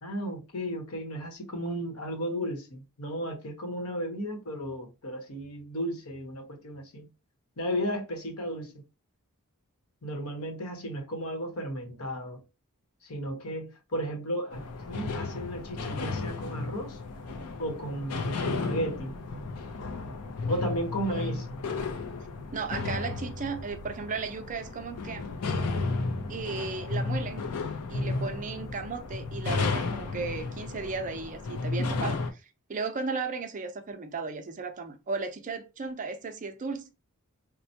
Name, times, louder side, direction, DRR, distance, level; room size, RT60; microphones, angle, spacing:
voice 1, 0.0-7.1 7.6-8.8 10.0-12.4 13.0-17.0 17.6-19.2 20.5-21.5, equal, 70° left, 1.0 m, -34 dB
sound 1, 14.5-32.3, left 3 dB, 85° left, 0.5 m, -33 dB
voice 2, 21.0-21.4 22.5-25.3 26.3-27.5 27.9-32.4 32.7-36.9, right 4 dB, 35° right, 0.5 m, -35 dB
4.3 x 2.1 x 2.7 m
head